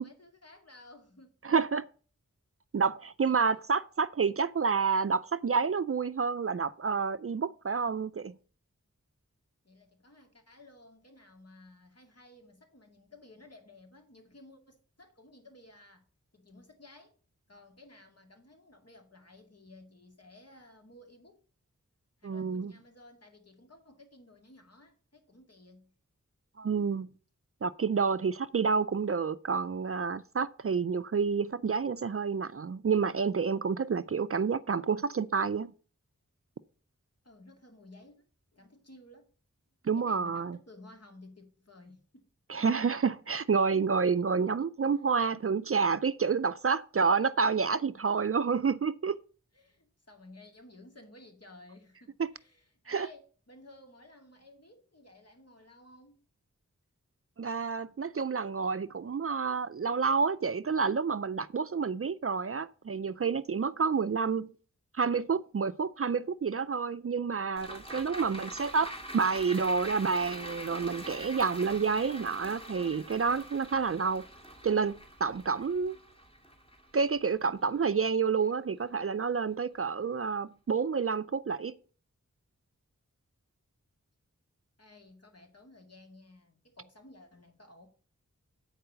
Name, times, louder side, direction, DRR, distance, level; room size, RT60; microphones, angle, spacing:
voice 1, 0.0-1.4 9.6-16.0 16.3-17.2 17.5-21.4 22.2-25.9 37.2-38.3 38.5-39.3 39.9-42.3 44.9-45.0 49.5-56.2 84.8-87.9, left 2 dB, 55° left, 2.3 m, -55 dB
voice 2, 1.4-1.9 2.7-8.3 22.2-22.7 26.6-27.1 27.6-35.7 39.8-40.6 42.5-49.2 52.9-53.1 57.4-64.5 64.9-74.2 74.6-76.0 76.9-81.7, right 5 dB, 50° right, 0.4 m, -29 dB
sound 1, 67.6-78.1 78.4-78.5, equal, 20° left, 2.0 m, -44 dB
9.0 x 4.7 x 6.8 m
wide cardioid pair, 55°, 30 cm